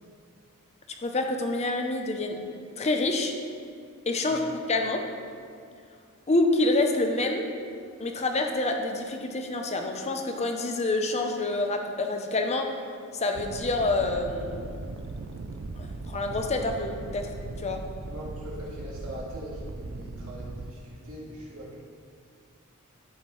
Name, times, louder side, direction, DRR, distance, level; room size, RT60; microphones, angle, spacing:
voice 1, 1.0-2.4 2.8-3.3 4.1-5.0 6.3-7.5 8.0-12.7 13.1-14.6 15.8-17.3 17.6-17.8, left 2 dB, 30° left, 4 dB, 0.6 m, -27 dB
sound 1, 13.3-20.7, right 3 dB, 65° right, 0.4 m, -38 dB
voice 2, 18.1-21.8, equal, 90° right, -4 dB, 1.8 m, -41 dB
11.5 x 4.8 x 3.1 m, 2.2 s
head